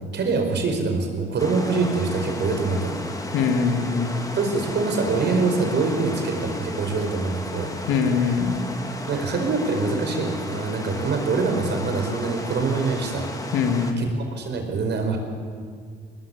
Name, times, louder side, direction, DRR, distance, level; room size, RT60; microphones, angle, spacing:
voice 1, 0.1-3.0 4.3-7.7 8.3-8.4 9.1-13.3 14.0-15.2, right 4 dB, 60° right, 4 dB, 4.9 m, -24 dB
sound 1, 1.4-13.9, left 2 dB, 15° left, 2.8 m, -34 dB
voice 2, 3.3-4.1 7.9-8.5 13.5-14.1, left 5 dB, 90° left, 5 dB, 2.8 m, -22 dB
21.5 x 19.5 x 8.5 m, 2.1 s
cardioid pair, 90°, 20 cm